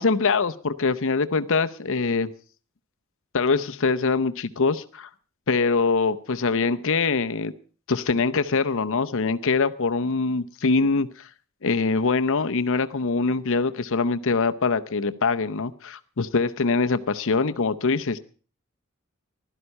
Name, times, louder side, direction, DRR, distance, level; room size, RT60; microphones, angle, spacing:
voice 1, 0.0-2.3 3.3-5.1 5.5-7.5 7.9-11.3 11.6-18.2, left 4 dB, 65° left, 10 dB, 0.7 m, -23 dB
16.0 x 12.5 x 5.4 m, 0.39 s
head